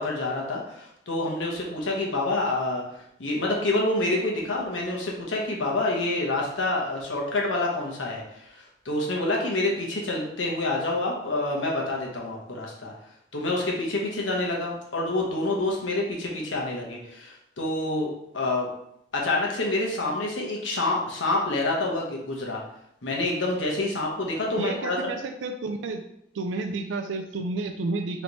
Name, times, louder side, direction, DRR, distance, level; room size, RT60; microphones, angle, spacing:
voice 1, 0.0-2.8 3.2-12.9 13.3-18.7 19.1-22.6 23.0-25.1, left 2 dB, 90° left, -2 dB, 1.0 m, -27 dB
voice 2, 24.6-26.0 26.3-28.2, right 3 dB, 75° right, 5 dB, 0.4 m, -31 dB
3.3 x 3.0 x 3.9 m, 0.76 s
head